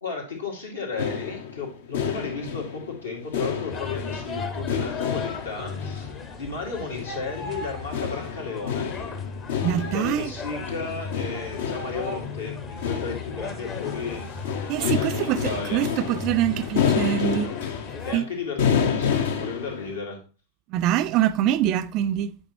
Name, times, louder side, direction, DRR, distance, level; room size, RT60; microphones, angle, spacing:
voice 1, 0.0-8.9 9.6-14.2 14.7-15.9 18.0-20.2, left 4 dB, 75° left, 2.2 m, -34 dB
sound 1, 1.0-20.0, left 7 dB, 60° left, 0.8 m, -29 dB
sound 2, 3.7-18.2, left 4 dB, 30° left, 0.8 m, -36 dB
voice 2, 9.6-10.3 14.7-17.5 18.1-18.3 20.7-22.3, right 11 dB, 40° right, 0.4 m, -24 dB
8.6 x 5.2 x 3.0 m
figure-of-eight pair, 90°, 0 cm